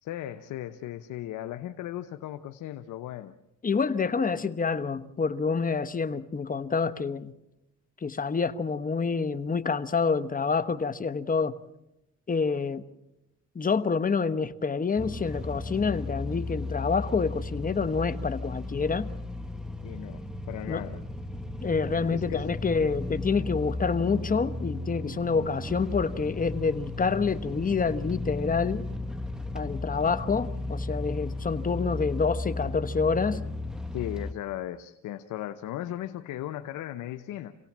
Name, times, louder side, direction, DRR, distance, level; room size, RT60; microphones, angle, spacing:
voice 1, 0.0-3.3 19.8-21.0 22.1-22.5 25.4-25.5 33.9-37.6, left 13 dB, 85° left, 8 dB, 1.0 m, -37 dB
voice 2, 3.6-7.3 8.0-11.5 12.3-12.8 13.5-19.1 20.7-20.8 21.6-28.9 29.5-33.4, left 5 dB, 30° left, 12 dB, 1.1 m, -27 dB
sound 1, 15.0-34.3, left 2 dB, ahead, 1.4 m, -35 dB
27.5 x 17.5 x 7.4 m, 0.92 s
cardioid pair, 90°, 30 cm